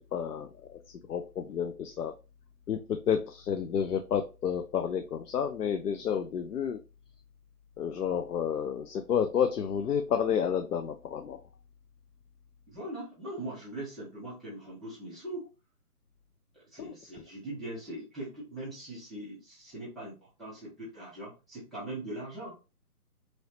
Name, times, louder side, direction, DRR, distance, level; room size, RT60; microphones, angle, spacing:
voice 1, 0.1-0.8 1.1-2.1 2.7-6.8 7.8-11.4 16.8-16.9, left 8 dB, 75° left, 6 dB, 0.6 m, -30 dB
voice 2, 12.7-15.4 16.7-22.5, right 1 dB, ahead, -9 dB, 0.5 m, -41 dB
3.1 x 2.7 x 2.9 m, 0.30 s
figure-of-eight pair, 150°, 46 cm